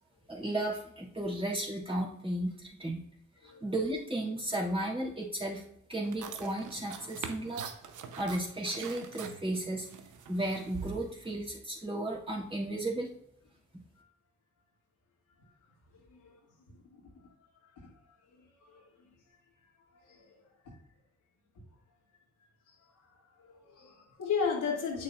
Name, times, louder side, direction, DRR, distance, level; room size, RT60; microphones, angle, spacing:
voice 1, 0.3-3.0 3.4-5.6 5.9-7.7 8.2-9.9 10.3-13.1, right 1 dB, 15° right, -3 dB, 2.8 m, -34 dB
sound 1, 6.0-11.4, right 7 dB, 75° right, 0.8 m, -44 dB
voice 2, 16.7-17.0 17.8-17.9 18.6-18.8 20.0-20.3 20.6-20.8 23.5-25.0, left 6 dB, 80° left, -2 dB, 2.2 m, -35 dB
8.5 x 6.4 x 2.4 m, 0.74 s
supercardioid pair, 55°, 31 cm